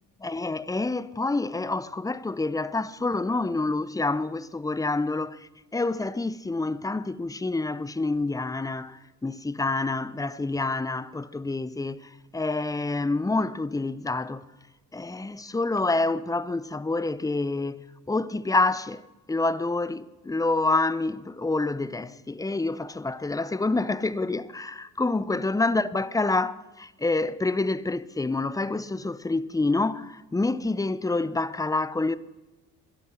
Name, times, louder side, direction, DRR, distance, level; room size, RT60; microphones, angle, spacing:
voice 1, 0.2-14.5 14.9-19.0 19.3-32.2, left 3 dB, 5° left, 0.6 m, -27 dB
22.5 x 12.0 x 4.4 m
hypercardioid pair, 50°, 50 cm